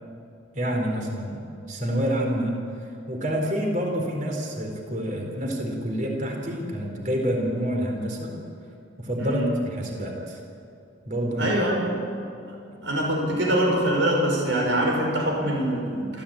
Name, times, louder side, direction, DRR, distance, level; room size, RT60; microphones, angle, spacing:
voice 1, 0.5-1.4 1.7-2.6 3.1-8.4 9.0-10.4 11.1-11.5 12.7-12.8, equal, 45° right, 1 dB, 4.1 m, -27 dB
voice 2, 11.4-12.0 12.8-16.2, right 1 dB, 80° right, 0 dB, 6.1 m, -24 dB
28.0 x 14.5 x 8.8 m, 2.6 s
head